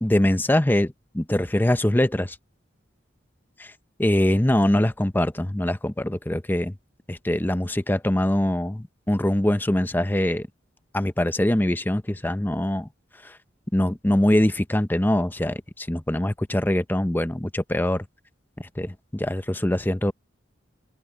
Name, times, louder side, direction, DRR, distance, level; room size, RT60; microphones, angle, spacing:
voice 1, 0.0-2.4 3.6-3.7 4.0-6.7 7.1-10.5 10.9-12.9 13.2-13.4 13.7-18.0 18.8-20.1, left 1 dB, 10° left, 0.6 m, -23 dB
open air
head